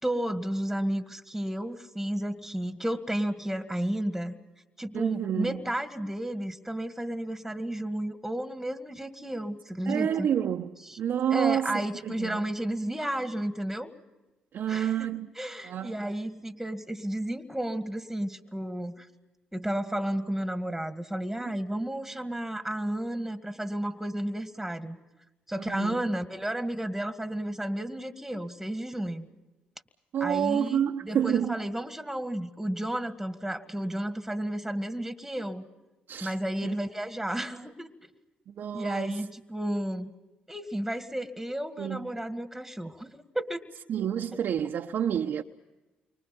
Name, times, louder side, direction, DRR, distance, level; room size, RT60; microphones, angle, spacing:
voice 1, 0.0-4.3 4.8-10.3 10.9-11.0 11.3-13.9 14.7-15.1 15.4-19.1 19.5-25.0 25.5-29.3 30.2-35.7 36.2-37.9 38.7-40.1 40.5-43.6, right 1 dB, 5° right, 2.1 m, -32 dB
voice 2, 4.9-5.6 9.9-12.4 14.5-15.3 15.6-16.0 21.4-21.6 25.6-26.0 30.1-31.6 36.1-36.3 36.6-36.8 38.5-39.3 41.8-42.1 43.9-45.4, right 9 dB, 65° right, 1.1 m, -29 dB
30.0 x 25.0 x 5.5 m
hypercardioid pair, 55°, 4 cm